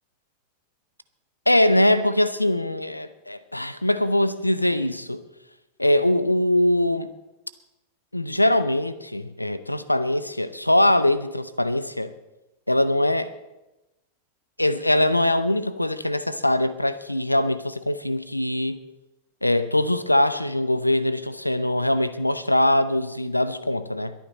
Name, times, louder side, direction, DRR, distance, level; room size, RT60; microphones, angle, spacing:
voice 1, 1.5-5.2 5.8-7.1 8.1-12.1 12.7-13.3 14.6-18.8 19.4-24.1, left 1 dB, 85° left, 15 dB, 0.7 m, -22 dB
22.0 x 9.5 x 4.2 m, 0.99 s
figure-of-eight pair, 90°, 0 cm